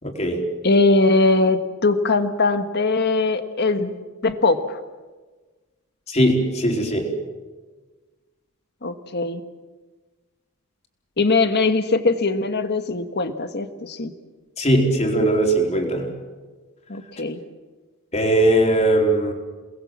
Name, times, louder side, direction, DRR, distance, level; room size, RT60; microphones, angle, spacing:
voice 1, 0.0-0.4 6.1-7.1 14.6-16.1 18.1-19.3, right 1 dB, 30° left, 1 dB, 4.3 m, -19 dB
voice 2, 0.6-3.9 4.2-4.8 8.8-9.4 11.2-14.1 16.9-17.4, left 3 dB, 50° left, 8 dB, 1.5 m, -20 dB
29.5 x 20.5 x 7.5 m, 1.3 s
head